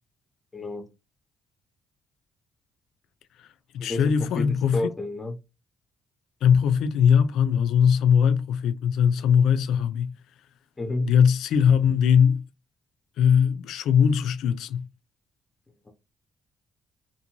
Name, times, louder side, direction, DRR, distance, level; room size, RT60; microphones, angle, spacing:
voice 1, 0.5-0.9 3.8-5.4 10.8-11.2 15.9-16.0, left 2 dB, 20° left, 0.6 m, -30 dB
voice 2, 3.7-4.8 6.4-10.1 11.0-12.4 13.2-14.8, left 7 dB, 85° left, 0.3 m, -20 dB
2.6 x 2.6 x 2.9 m
cardioid pair, 90°, 0 cm